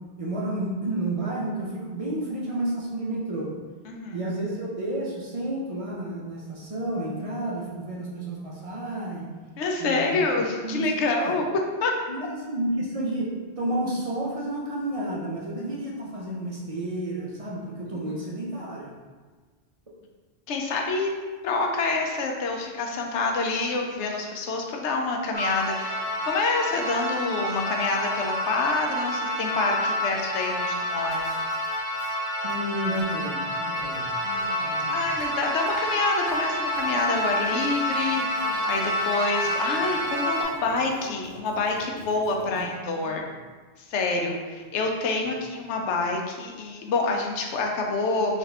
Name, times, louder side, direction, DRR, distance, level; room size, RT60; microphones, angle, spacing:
voice 1, 0.2-3.5 4.1-9.3 9.8-10.2 10.6-10.9 11.2-11.4 12.1-13.3 13.6-18.9 32.4-34.1 34.6-35.0 42.5-43.1, right 1 dB, 45° right, -4 dB, 0.4 m, -31 dB
voice 2, 3.9-4.2 9.6-12.0 20.5-21.1 21.4-31.4 34.2-43.2 43.9-48.4, left 3 dB, 80° left, 1 dB, 0.9 m, -27 dB
sound 1, 25.3-40.4, equal, 10° right, 0.8 m, -28 dB
sound 2, 31.0-32.1 32.4-33.0 33.6-34.0 34.4-34.5 34.8-35.3 35.6-35.8 36.1-42.6, equal, 20° left, 1.6 m, -48 dB
4.0 x 2.4 x 3.3 m, 1.4 s
omnidirectional pair, 1.2 m